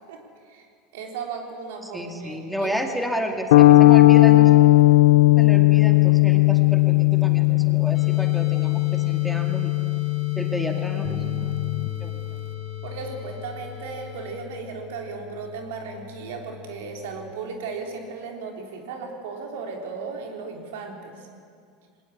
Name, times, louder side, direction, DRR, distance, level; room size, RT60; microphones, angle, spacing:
voice 1, 0.1-0.7 0.9-2.8 12.8-21.3, right 5 dB, 80° right, 2 dB, 3.6 m, -36 dB
voice 2, 1.8-4.5 5.4-9.7 10.3-11.6 12.0-12.2, equal, ahead, 3 dB, 2.2 m, -31 dB
sound 1, 3.5-11.9, left 19 dB, 85° left, 0.8 m, -17 dB
sound 2, 7.9-14.4, left 3 dB, 40° left, 2.6 m, -44 dB
sound 3, 11.0-17.3, left 9 dB, 20° right, 2.3 m, -37 dB
20.5 x 19.0 x 8.6 m, 2.3 s
supercardioid pair, 115°, 0 cm